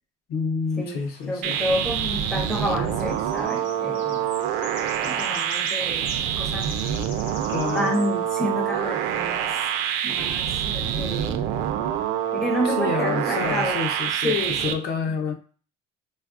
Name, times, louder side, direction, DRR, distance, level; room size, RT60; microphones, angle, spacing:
voice 1, 0.3-1.6 7.5-7.9 12.6-14.3 14.6-15.3, left 5 dB, 50° left, 4 dB, 0.6 m, -28 dB
sound 1, 0.7-11.3, left 3 dB, 75° left, 0.9 m, -46 dB
voice 2, 1.3-4.3 5.0-6.8 7.7-9.5 10.0-11.5 12.3-13.8 14.1-14.8, left 1 dB, 5° left, 0 dB, 0.5 m, -29 dB
sound 2, 1.4-14.7, right 9 dB, 90° right, 0.4 m, -26 dB
3.3 x 2.3 x 2.4 m, 0.38 s
cardioid pair, 160°, 20 cm